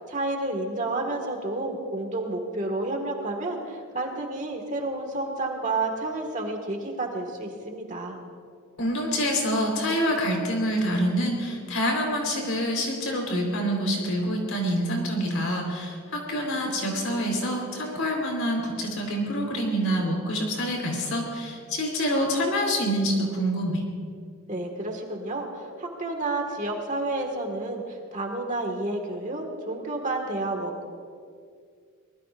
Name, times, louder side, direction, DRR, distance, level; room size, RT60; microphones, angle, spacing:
voice 1, 0.1-8.2 24.5-30.8, right 2 dB, 35° right, 2 dB, 1.8 m, -30 dB
voice 2, 8.8-23.8, equal, 70° left, 0 dB, 4.0 m, -26 dB
24.5 x 20.0 x 2.6 m, 2.2 s
head